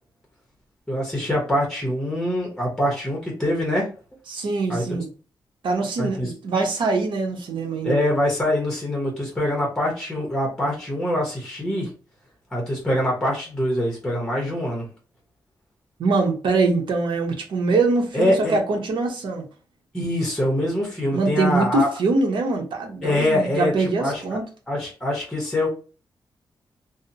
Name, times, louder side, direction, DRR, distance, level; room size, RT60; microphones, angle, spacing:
voice 1, 0.9-3.9 4.7-4.8 6.0-6.3 7.8-11.9 12.5-14.9 18.1-18.6 19.9-21.9 23.0-24.4 24.7-25.7, left 1 dB, 5° left, 0.8 m, -24 dB
voice 2, 4.3-5.1 5.6-8.0 16.0-19.4 21.1-24.4, right 3 dB, 85° right, 0.7 m, -23 dB
2.7 x 2.0 x 2.5 m
wide cardioid pair, 175°, 8 cm